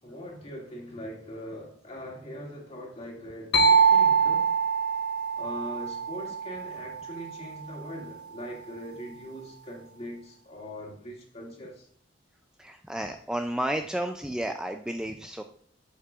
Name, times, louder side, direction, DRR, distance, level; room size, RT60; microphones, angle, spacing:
voice 1, 0.0-4.5 5.3-11.9, equal, 35° left, -2 dB, 2.3 m, -41 dB
sound 1, 3.5-7.2, right 5 dB, 60° left, 0.9 m, -24 dB
voice 2, 12.6-15.4, right 1 dB, 5° right, 5 dB, 0.3 m, -32 dB
8.2 x 7.5 x 2.4 m, 0.63 s
head